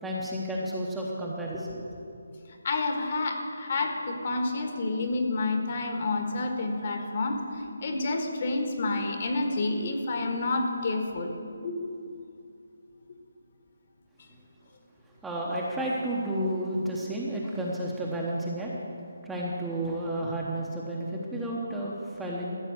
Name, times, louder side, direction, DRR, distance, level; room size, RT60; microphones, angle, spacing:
voice 1, 0.0-2.2 15.2-18.7 19.2-22.6, right 1 dB, 5° right, -4 dB, 0.9 m, -31 dB
voice 2, 2.6-11.3 11.6-11.9, left 2 dB, 40° left, 4 dB, 1.4 m, -29 dB
14.0 x 6.0 x 7.7 m, 2.4 s
hypercardioid pair, 170°, 0 cm